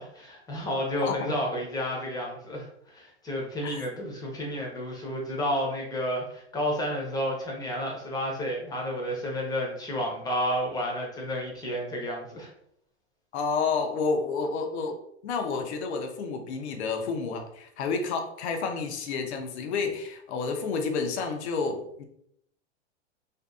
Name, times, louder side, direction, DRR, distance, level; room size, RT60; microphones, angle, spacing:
voice 1, 0.0-12.5, equal, 10° left, -1 dB, 0.8 m, -31 dB
voice 2, 1.0-1.3 3.6-3.8 13.3-22.0, left 4 dB, 75° left, 5 dB, 0.7 m, -30 dB
2.6 x 2.5 x 2.3 m, 0.72 s
hypercardioid pair, 120°, 34 cm